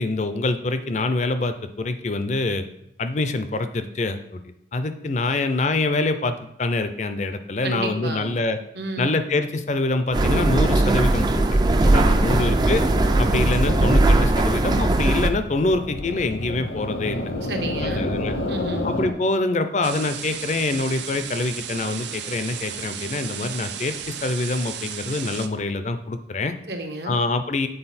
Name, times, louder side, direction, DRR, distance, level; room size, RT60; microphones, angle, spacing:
voice 1, 0.0-2.6 3.0-8.6 9.0-12.8 13.2-17.3 17.8-18.3 18.8-26.5 27.1-27.7, left 2 dB, 40° left, 10 dB, 0.5 m, -25 dB
voice 2, 7.6-8.3 8.7-9.1 12.0-12.6 17.4-18.1 18.5-18.9 26.7-27.2, right 1 dB, 70° right, 4 dB, 1.0 m, -31 dB
sound 1, 10.1-15.3, right 2 dB, 25° right, 0.3 m, -19 dB
sound 2, 12.4-19.1, left 1 dB, 75° left, 0.7 m, -30 dB
sound 3, 19.8-25.5, right 8 dB, 85° right, 0.6 m, -34 dB
7.8 x 4.2 x 4.1 m, 0.79 s
head